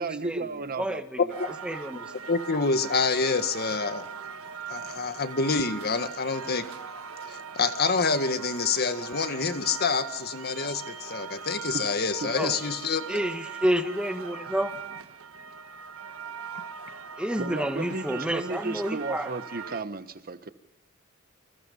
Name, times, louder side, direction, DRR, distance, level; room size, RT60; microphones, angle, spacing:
voice 1, 0.0-1.0 11.7-11.9 12.2-12.5 17.4-20.5, right 3 dB, 45° right, 11 dB, 1.2 m, -34 dB
voice 2, 0.8-1.2 1.6-2.1 12.4-12.6 13.1-14.7 17.2-19.3, equal, 5° right, 7 dB, 1.8 m, -29 dB
sound 1, 1.3-19.8, right 6 dB, 75° right, 1.5 m, -40 dB
voice 3, 2.3-4.0 4.7-6.6 7.3-13.2, left 4 dB, 50° left, 9 dB, 1.8 m, -27 dB
28.5 x 26.5 x 5.5 m, 0.81 s
head